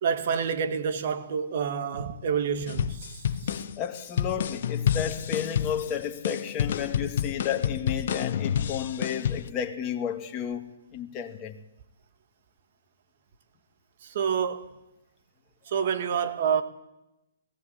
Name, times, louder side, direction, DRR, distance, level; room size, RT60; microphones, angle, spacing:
voice 1, 0.0-3.6 14.0-14.8 15.7-16.6, right 7 dB, 55° right, 1.9 m, -28 dB
sound 1, 2.7-9.5, left 9 dB, 60° left, 1.1 m, -29 dB
voice 2, 3.8-10.7 10.9-11.6, left 8 dB, 25° left, 2.0 m, -32 dB
19.5 x 16.0 x 8.5 m
hypercardioid pair, 135°, 0 cm